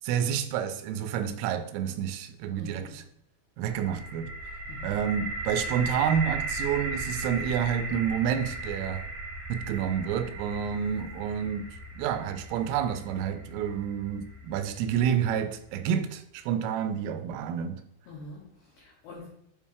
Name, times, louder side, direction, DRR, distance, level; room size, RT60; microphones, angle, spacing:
voice 1, 0.0-3.0 3.6-4.3 4.8-9.1 9.5-17.8, right 8 dB, 85° right, 3.1 m, -29 dB
voice 2, 2.6-3.0 4.7-5.0 18.1-19.3, left 3 dB, 80° left, 2.2 m, -45 dB
sound 1, 3.7-15.5, right 2 dB, 60° right, 1.4 m, -37 dB
8.2 x 2.9 x 4.6 m
omnidirectional pair, 5.9 m